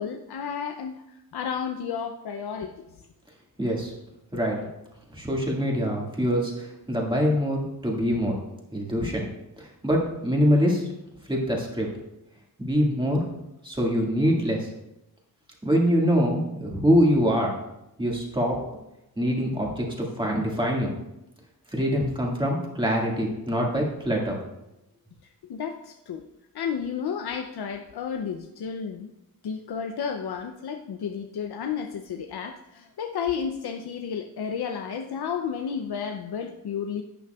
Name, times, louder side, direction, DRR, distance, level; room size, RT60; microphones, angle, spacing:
voice 1, 0.0-2.9 25.5-26.2 26.5-29.1 29.4-37.0, left 7 dB, 85° left, 5 dB, 0.6 m, -32 dB
voice 2, 3.6-3.9 4.3-4.6 5.1-8.4 8.7-9.3 9.6-10.8 11.3-11.9 12.6-13.2 13.6-14.7 15.6-17.6 18.0-18.6 19.2-20.9 21.7-24.4, equal, 15° right, -2 dB, 1.8 m, -24 dB
11.0 x 8.5 x 2.3 m, 0.89 s
wide cardioid pair, 140°, 38 cm